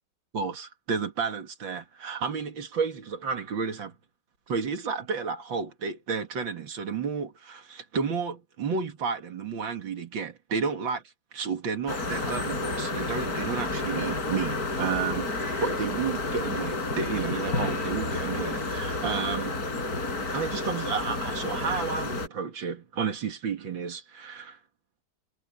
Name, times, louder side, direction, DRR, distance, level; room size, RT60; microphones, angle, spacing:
voice 1, 0.3-3.9 4.5-11.0 11.3-15.3 15.6-19.6 20.3-24.6, right 5 dB, 80° right, 2.7 m, -31 dB
sound 1, 11.9-22.3, left 2 dB, 50° left, 4.6 m, -30 dB
omnidirectional pair, 2.1 m